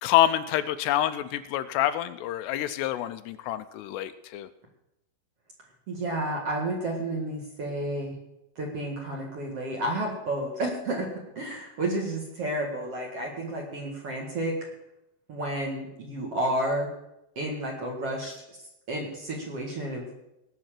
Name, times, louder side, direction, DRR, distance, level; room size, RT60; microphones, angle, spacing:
voice 1, 0.0-4.5, left 12 dB, 80° left, 11 dB, 2.6 m, -27 dB
voice 2, 5.9-8.1 8.6-11.1 11.4-14.5 15.3-16.9 17.4-18.4 18.9-20.1, right 1 dB, 45° right, -1 dB, 2.2 m, -31 dB
18.5 x 6.3 x 7.5 m, 0.88 s
omnidirectional pair, 5.0 m